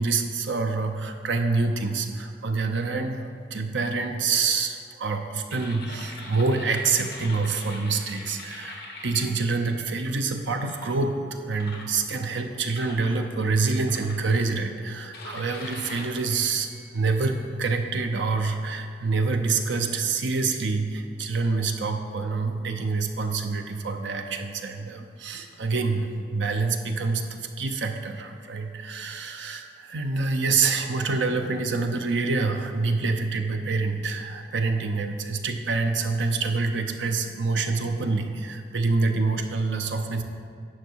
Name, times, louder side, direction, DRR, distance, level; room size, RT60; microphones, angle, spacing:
voice 1, 0.0-40.2, right 4 dB, 80° right, 5 dB, 0.7 m, -26 dB
sound 1, 5.5-10.1 10.6-11.0 11.6-12.3 12.8-13.1 13.9-14.6 15.1-17.4, left 2 dB, 60° left, 1.3 m, -43 dB
9.5 x 5.9 x 4.6 m, 2.2 s
head